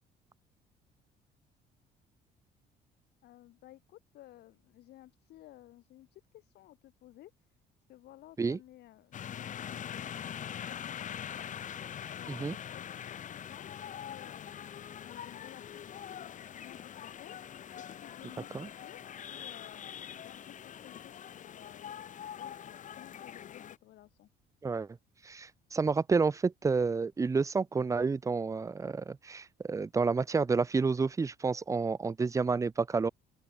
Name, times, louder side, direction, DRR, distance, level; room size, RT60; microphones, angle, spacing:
voice 1, 3.2-7.3 7.9-11.5 12.1-15.9 16.2-17.4 17.7-22.1 22.4-24.3, left 15 dB, 75° left, 4.3 m, -55 dB
sound 1, 9.1-23.8, left 9 dB, 50° left, 2.1 m, -43 dB
voice 2, 25.2-33.1, right 4 dB, 20° right, 0.6 m, -30 dB
open air
cardioid pair, 110°, 17 cm